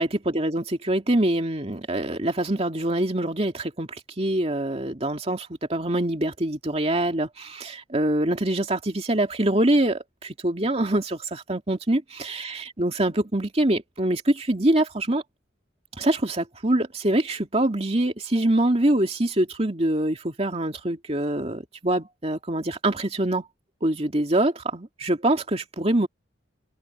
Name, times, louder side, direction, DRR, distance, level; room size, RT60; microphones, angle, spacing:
voice 1, 0.0-3.9 4.2-15.2 16.0-23.4 23.8-26.1, right 1 dB, 30° right, 2.6 m, -24 dB
head